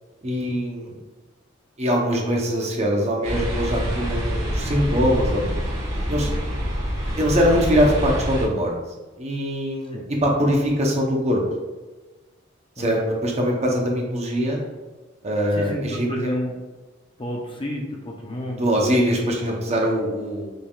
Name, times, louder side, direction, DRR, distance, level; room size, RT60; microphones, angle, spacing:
voice 1, 0.2-1.0 1.8-5.5 5.9-6.3 7.2-8.7 9.2-11.4 12.8-14.6 15.2-16.3 18.6-20.5, equal, 35° right, -1 dB, 0.8 m, -22 dB
sound 1, 3.2-8.5, equal, 70° right, 1.3 m, -26 dB
voice 2, 12.8-13.1 15.5-16.6 17.2-18.8 19.1-19.2, left 1 dB, 25° left, 0 dB, 0.6 m, -30 dB
5.3 x 3.5 x 2.3 m, 1.2 s
head